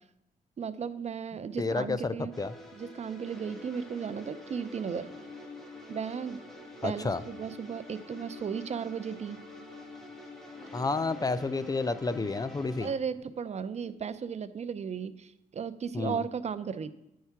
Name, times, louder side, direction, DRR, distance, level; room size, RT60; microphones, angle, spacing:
voice 1, 0.6-2.3 2.7-5.1 5.9-6.4 6.8-9.4 12.8-16.9, right 6 dB, 45° right, 14 dB, 0.4 m, -35 dB
voice 2, 1.6-2.5 6.8-7.2 10.7-12.9 15.9-16.2, left 3 dB, 25° left, 13 dB, 0.4 m, -30 dB
sound 1, 2.3-13.0, left 2 dB, ahead, 1.5 m, -46 dB
9.6 x 4.7 x 5.7 m, 0.86 s
cardioid pair, 95°, 15 cm